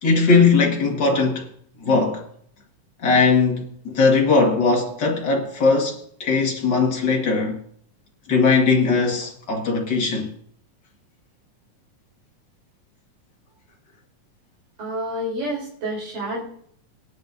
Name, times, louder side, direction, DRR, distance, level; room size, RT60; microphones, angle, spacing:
voice 1, 0.0-1.5 1.8-2.3 3.0-7.6 8.3-10.3, left 4 dB, 40° left, 1.8 m, -19 dB
voice 2, 14.8-16.4, right 1 dB, 70° right, 5.2 m, -28 dB
19.5 x 10.5 x 2.6 m
omnidirectional pair, 3.9 m